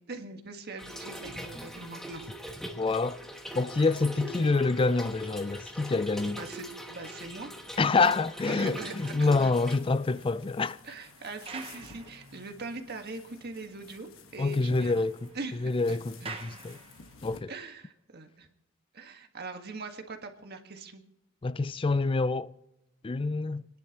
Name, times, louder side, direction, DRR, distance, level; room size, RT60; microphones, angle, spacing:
voice 1, 0.0-2.3 3.8-3.9 6.3-7.5 8.5-9.7 10.8-15.0 15.3-16.3 17.5-18.5 18.9-21.0, right 3 dB, 50° right, 1.5 m, -42 dB
Trickle dribble / Fill (with liquid), 0.8-9.8, right 1 dB, ahead, 1.2 m, -42 dB
voice 2, 2.8-3.2 3.5-6.4 7.8-10.8 14.4-15.1 15.6-16.8 17.2-17.5 21.4-22.5 23.0-23.7, left 3 dB, 25° left, 0.4 m, -27 dB
sound 1, 9.5-17.4, left 4 dB, 70° left, 1.4 m, -54 dB
sound 2, 9.5-12.8 13.3-13.4 13.8-13.9 14.2-17.4, right 4 dB, 30° right, 1.0 m, -49 dB
28.5 x 10.5 x 3.0 m
head